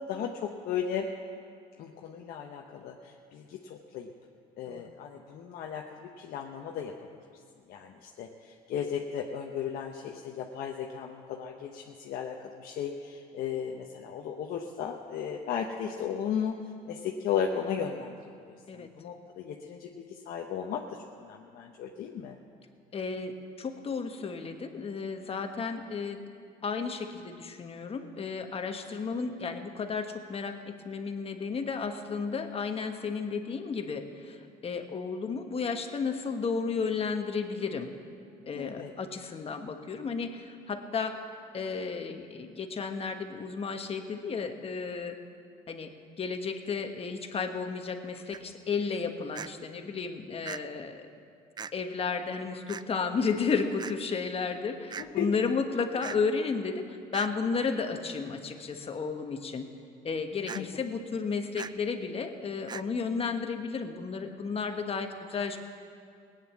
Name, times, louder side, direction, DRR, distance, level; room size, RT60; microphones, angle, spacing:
voice 1, 0.1-1.1 1.8-4.1 4.6-6.9 7.7-16.6 16.9-18.2 18.5-20.8 21.2-22.4 38.5-38.9 55.0-55.3 60.5-60.7, left 8 dB, 65° left, 1 dB, 1.0 m, -35 dB
voice 2, 22.9-26.2 26.6-37.9 38.4-45.2 45.7-51.1 51.7-59.7 60.0-65.6, left 5 dB, 35° left, 6 dB, 1.4 m, -33 dB
sound 1, 48.3-48.4 49.3-49.5 50.5-50.6 51.6-51.7 52.7-52.8 53.8-53.9 54.9-55.1 56.0-56.2 57.1-57.3 60.5-60.6 61.6-61.7 62.7-62.8, right 6 dB, 25° right, 0.4 m, -38 dB
17.5 x 9.5 x 7.3 m, 2.3 s
supercardioid pair, 85°, 16 cm